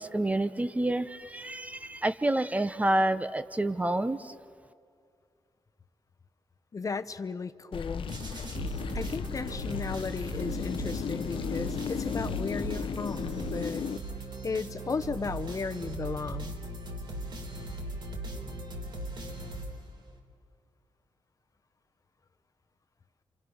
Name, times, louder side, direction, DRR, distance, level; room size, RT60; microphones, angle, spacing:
voice 1, 0.0-4.3, right 1 dB, 15° right, 11 dB, 0.8 m, -28 dB
voice 2, 6.7-8.1 8.9-13.8 14.4-16.6, left 4 dB, 40° left, 9 dB, 0.9 m, -35 dB
sound 1, 7.7-14.0, left 7 dB, 70° left, 0.8 m, -35 dB
sound 2, 8.1-20.2, right 2 dB, 60° right, 4.1 m, -39 dB
30.0 x 27.5 x 6.5 m, 2.2 s
wide cardioid pair, 110°, 9 cm